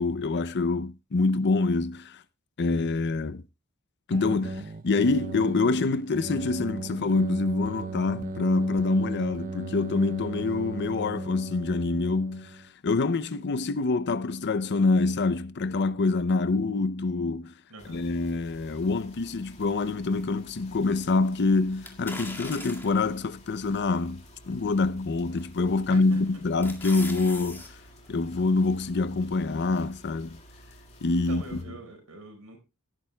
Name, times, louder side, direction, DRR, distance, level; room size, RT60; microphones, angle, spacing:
voice 1, 0.0-2.2 2.6-3.4 4.1-17.5 17.9-24.2 24.5-27.7 28.1-30.4 31.0-31.4, left 3 dB, 50° left, 0.6 m, -26 dB
sound 1, 4.1-12.7, right 3 dB, 40° right, 0.5 m, -38 dB
voice 2, 17.7-18.0 25.9-26.2 31.1-32.6, right 2 dB, 80° right, 5.0 m, -44 dB
sound 2, 17.8-31.6, equal, 30° left, 2.5 m, -52 dB
sound 3, 21.8-23.1 23.7-23.8 25.4-25.7 26.1-27.7 28.0-28.1, left 2 dB, 10° left, 1.9 m, -40 dB
17.5 x 10.0 x 2.2 m
head